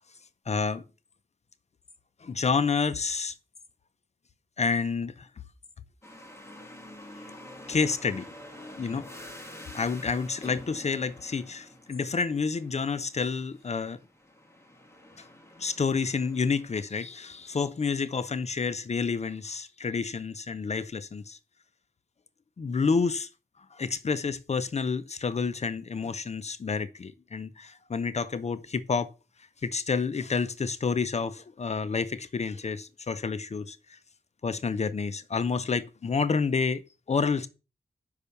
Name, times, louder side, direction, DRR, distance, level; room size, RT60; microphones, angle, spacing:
voice 1, 0.5-0.8 2.2-3.3 4.6-5.3 7.7-8.3 8.8-9.1 9.7-14.0 15.2-15.3 15.6-21.4 22.6-23.3 23.7-29.1 29.6-34.0 34.4-36.8 37.1-37.5, left 5 dB, 45° left, 0.6 m, -29 dB
sound 1, 6.0-17.5, left 1 dB, 15° left, 1.8 m, -47 dB
6.8 x 5.6 x 6.7 m
wide cardioid pair, 155°, 16 cm